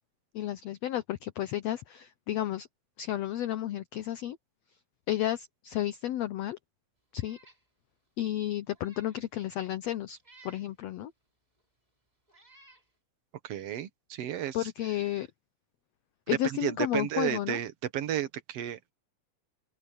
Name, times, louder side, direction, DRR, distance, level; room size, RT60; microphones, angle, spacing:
voice 1, 0.3-2.7 3.0-4.4 5.1-6.6 7.1-7.4 8.2-10.2 10.4-11.1 14.5-15.3 16.3-17.6, left 13 dB, 85° left, 1.4 m, -32 dB
Meow, 7.1-7.6 8.1-8.2 8.7-9.2 10.2-10.7 11.6-11.7 12.3-12.9, right 3 dB, 10° right, 5.0 m, -57 dB
voice 2, 13.4-14.7 16.4-18.9, right 11 dB, 60° right, 1.9 m, -33 dB
open air
omnidirectional pair, 4.0 m